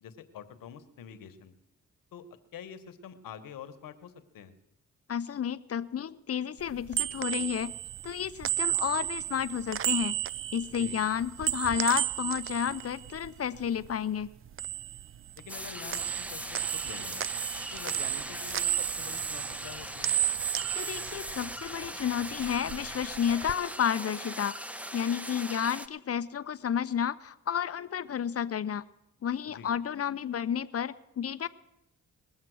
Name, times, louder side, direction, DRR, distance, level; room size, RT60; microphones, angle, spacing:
voice 1, 0.0-1.5 2.1-2.2 2.5-4.5 10.8-11.0 15.4-17.3 17.7-20.1 29.5-29.7, left 8 dB, 75° left, 11 dB, 1.2 m, -46 dB
voice 2, 5.1-7.7 8.0-10.2 10.5-14.3 20.7-24.5 24.9-28.8 29.2-31.5, left 8 dB, 45° left, 15 dB, 0.7 m, -31 dB
sound 1, 6.6-13.9 14.2-15.6 15.9-21.9 22.2-23.5, right 11 dB, 40° right, 0.4 m, -33 dB
sound 2, 15.5-25.9, right 1 dB, 5° right, 0.8 m, -40 dB
20.5 x 7.3 x 6.3 m, 0.88 s
supercardioid pair, 55°, 34 cm